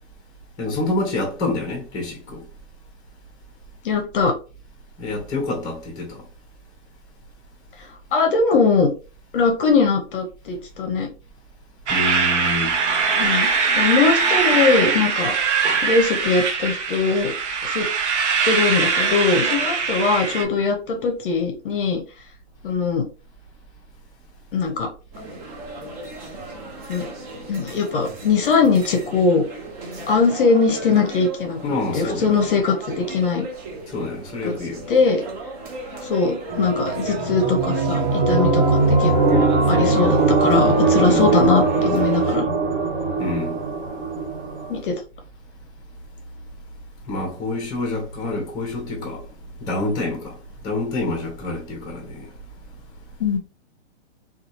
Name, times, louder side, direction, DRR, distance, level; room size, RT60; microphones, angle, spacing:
voice 1, 0.6-2.4 5.0-6.2 11.9-12.7 31.6-32.3 33.9-34.8 41.0-41.3 43.2-43.6 47.0-49.2 49.6-52.3, left 2 dB, 10° left, 0.8 m, -27 dB
voice 2, 3.8-4.3 8.1-8.9 9.3-11.1 13.1-15.3 15.8-17.3 17.6-17.9 18.4-22.0 22.6-23.1 24.5-24.9 26.9-27.1 27.5-29.4 30.1-31.6 31.9-33.5 34.4-34.5 34.9-35.2 36.1-42.5 44.7-44.9 53.2-53.4, left 4 dB, 45° left, 0.7 m, -21 dB
sound 1, 11.9-20.4, right 5 dB, 70° right, 0.8 m, -21 dB
sound 2, 25.1-42.4, right 2 dB, 30° right, 0.8 m, -36 dB
sound 3, 36.5-44.8, right 3 dB, 50° right, 1.2 m, -20 dB
2.9 x 2.4 x 2.7 m
hypercardioid pair, 155°, 37 cm